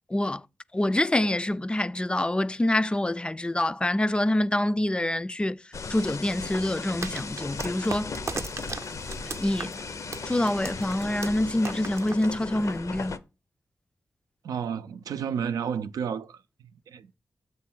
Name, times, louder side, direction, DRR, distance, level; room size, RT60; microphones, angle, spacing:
voice 1, 0.1-0.4 0.7-5.6 5.9-8.1 9.4-9.8 10.3-13.2, left 1 dB, 15° left, 0.3 m, -26 dB
sound 1, 5.7-13.2, left 4 dB, 60° left, 0.6 m, -37 dB
sound 2, 7.0-12.8, right 4 dB, 50° right, 0.6 m, -38 dB
voice 2, 14.4-16.4 16.9-17.2, right 7 dB, 90° right, 0.4 m, -31 dB
7.4 x 3.2 x 5.9 m
cardioid pair, 45°, 6 cm